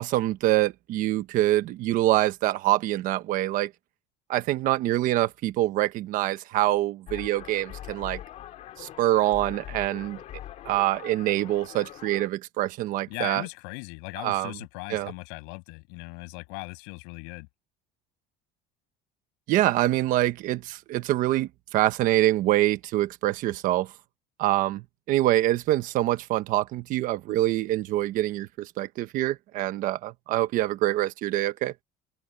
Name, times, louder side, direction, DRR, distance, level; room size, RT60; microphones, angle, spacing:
voice 1, 0.0-3.7 4.3-8.2 8.8-10.2 10.6-13.4 14.2-14.5 14.9-15.1 19.5-23.9 24.4-31.7, right 15 dB, 50° right, 1.2 m, -25 dB
sound 1, 7.1-12.3, left 12 dB, 40° left, 2.8 m, -42 dB
voice 2, 13.1-17.5, left 35 dB, 85° left, 7.8 m, -39 dB
open air
cardioid pair, 170°, 18 cm